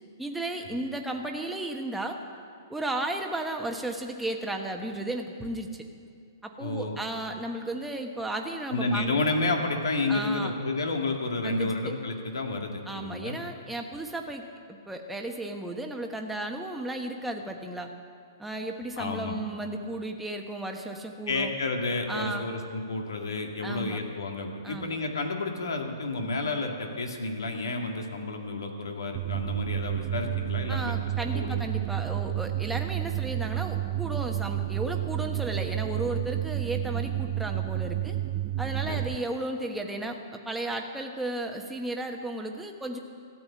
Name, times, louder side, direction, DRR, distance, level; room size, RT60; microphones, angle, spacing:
voice 1, 0.2-2.2 2.7-5.8 6.4-9.1 10.1-10.5 11.4-11.9 12.9-17.9 18.4-21.5 22.1-22.5 23.6-24.0 24.6-24.9 30.7-38.2 38.6-43.0, right 1 dB, 5° right, 2 dB, 1.2 m, -34 dB
voice 2, 6.6-7.0 8.7-13.4 19.0-19.4 21.3-30.9 31.2-31.6 38.9-39.1, left 2 dB, 80° left, 3 dB, 2.2 m, -30 dB
sound 1, 29.1-39.2, right 13 dB, 30° right, 0.3 m, -30 dB
14.5 x 7.9 x 9.6 m, 2.3 s
hypercardioid pair, 135°, 2 cm